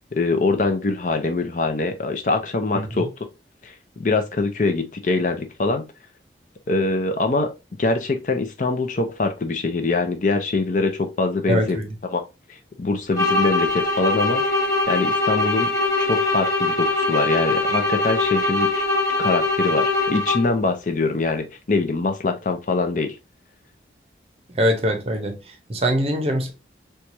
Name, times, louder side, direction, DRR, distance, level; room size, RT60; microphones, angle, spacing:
voice 1, 0.1-3.1 3.6-3.7 4.0-5.8 6.7-7.5 7.8-11.8 12.1-12.2 12.8-14.4 14.9-15.7 16.0-18.7 19.2-23.2, left 3 dB, 45° left, 0.5 m, -23 dB
voice 2, 2.7-3.1 11.5-12.0 24.5-26.5, equal, 35° right, 0.7 m, -23 dB
sound 1, 13.1-20.6, left 2 dB, 20° left, 1.0 m, -22 dB
4.5 x 2.3 x 2.6 m
head